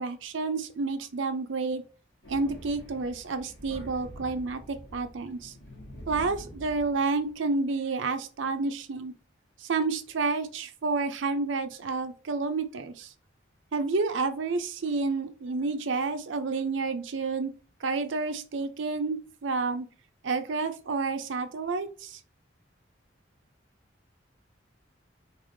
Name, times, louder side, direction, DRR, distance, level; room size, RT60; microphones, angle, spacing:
voice 1, 0.0-1.8 2.3-5.5 6.1-9.1 9.6-13.1 13.7-17.5 17.8-19.9 20.2-22.2, right 3 dB, 80° right, 9 dB, 0.5 m, -30 dB
Thunder, 2.2-7.3, equal, 70° left, 1.6 m, -45 dB
3.6 x 3.4 x 2.6 m, 0.37 s
head